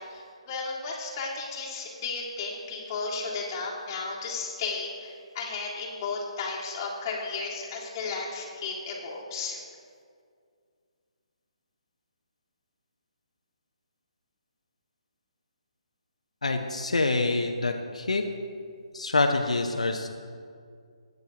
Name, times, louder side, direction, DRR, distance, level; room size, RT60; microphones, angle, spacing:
voice 1, 0.0-9.6, left 4 dB, 30° left, -4 dB, 2.2 m, -34 dB
voice 2, 16.4-18.2 18.9-20.2, left 3 dB, 80° left, 4 dB, 0.7 m, -26 dB
15.5 x 9.3 x 2.9 m, 2.2 s
figure-of-eight pair, 145°, 3 cm